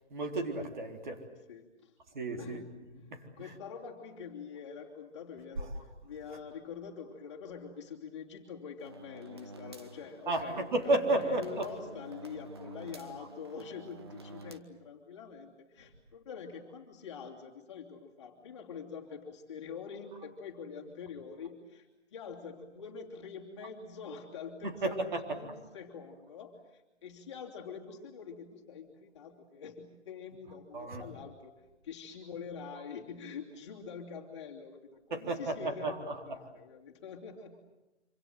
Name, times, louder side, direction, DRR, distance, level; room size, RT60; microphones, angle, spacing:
voice 1, 0.1-1.2 2.1-2.6 3.1-3.5 5.6-5.7 10.3-11.7 24.6-25.2 30.7-31.0 35.1-36.2, right 2 dB, 45° right, 3 dB, 3.8 m, -32 dB
voice 2, 1.5-2.0 2.3-2.7 3.0-3.1 3.4-37.6, left 6 dB, 25° left, -1 dB, 3.0 m, -45 dB
sound 1, 8.8-14.6, right 2 dB, 20° right, 0.9 m, -49 dB
26.5 x 26.0 x 7.8 m, 0.98 s
hypercardioid pair, 175°, 34 cm